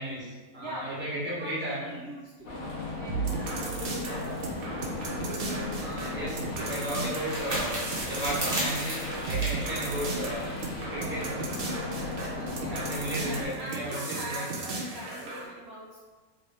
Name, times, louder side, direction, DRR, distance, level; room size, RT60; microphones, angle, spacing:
voice 1, 0.0-1.9 5.7-7.8 8.1-10.5 10.9-11.5 12.7-14.4, right 1 dB, 10° right, -7 dB, 0.7 m, -34 dB
voice 2, 0.6-2.6 3.0-4.4 4.8-5.2 12.4-12.9 13.2-16.1, right 1 dB, 85° right, -6 dB, 0.5 m, -42 dB
sound 1, 2.4-13.4, left 2 dB, 60° left, 0.7 m, -36 dB
sound 2, 3.1-15.5, right 3 dB, 65° right, 1.0 m, -36 dB
sound 3, 5.7-10.8, right 1 dB, 45° right, 0.9 m, -36 dB
3.0 x 2.6 x 3.3 m, 1.3 s
omnidirectional pair, 1.7 m